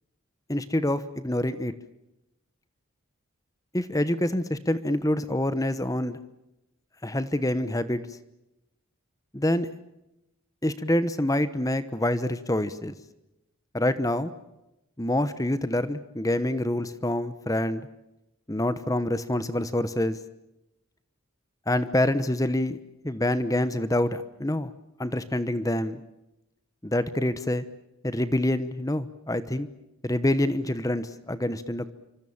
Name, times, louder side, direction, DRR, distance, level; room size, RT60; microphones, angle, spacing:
voice 1, 0.5-1.7 3.7-6.2 7.0-8.0 9.3-9.7 10.6-12.9 13.7-14.3 15.0-17.8 18.5-20.2 21.7-22.8 23.0-24.7 25.0-26.0 26.8-27.6 28.0-29.7 30.0-31.9, left 1 dB, 15° left, 13 dB, 1.0 m, -26 dB
27.0 x 25.5 x 7.2 m, 0.92 s
head